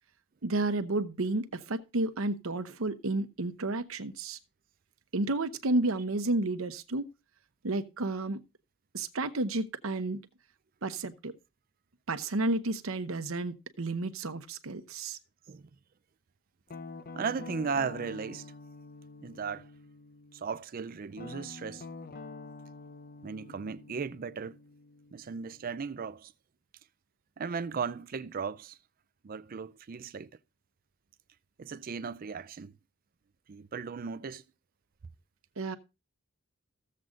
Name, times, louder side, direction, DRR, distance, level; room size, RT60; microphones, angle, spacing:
voice 1, 0.4-4.4 5.1-7.0 7.6-8.4 8.9-10.2 10.8-11.3 12.1-15.2 35.6-35.8, right 2 dB, 75° right, 0.9 m, -31 dB
Guitar, 16.7-20.5 21.1-25.9, left 3 dB, 45° left, 0.6 m, -47 dB
voice 2, 17.2-18.5 19.2-19.7 20.3-21.8 23.2-24.6 25.1-26.3 27.4-28.8 29.2-30.3 31.6-32.7 33.5-34.4, right 5 dB, 45° right, 0.4 m, -36 dB
15.0 x 7.6 x 2.5 m
head